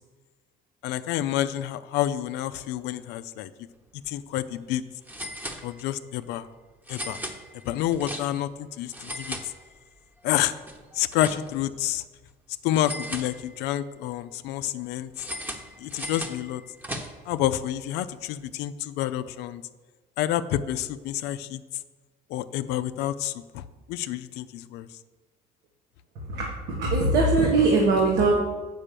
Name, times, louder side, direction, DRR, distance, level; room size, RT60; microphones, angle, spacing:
voice 1, 0.8-3.5 4.1-4.8 5.6-6.5 6.9-7.2 7.6-9.4 10.2-10.6 10.9-12.0 12.6-15.1 15.8-16.6 17.3-19.6 20.2-21.6 22.3-24.9, left 12 dB, 90° left, 12 dB, 0.4 m, -28 dB
sound 1, 3.9-4.1 4.4-4.5 5.0-6.1 6.8-8.6 8.9-10.0 10.4-11.8 12.7-13.8 15.1-17.4, equal, 10° right, 1.0 m, -38 dB
voice 2, 26.3-28.3, right 3 dB, 80° right, -2 dB, 1.4 m, -21 dB
7.4 x 5.5 x 6.7 m, 1.3 s
cardioid pair, 110°, 17 cm